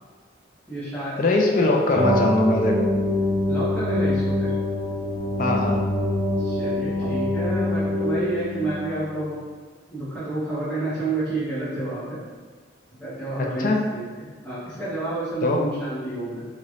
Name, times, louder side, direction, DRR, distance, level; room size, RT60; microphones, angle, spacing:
voice 1, 0.7-1.3 1.6-2.3 3.5-4.5 6.4-9.4 9.9-12.2 13.0-16.5, right 2 dB, 10° left, -12 dB, 1.2 m, -30 dB
voice 2, 1.2-2.9 5.4-5.8 13.6-13.8 15.4-15.6, left 2 dB, 45° left, 0 dB, 0.4 m, -21 dB
sound 1, 1.9-9.0, left 1 dB, 20° right, 0.4 m, -25 dB
3.1 x 2.9 x 2.5 m, 1.5 s
head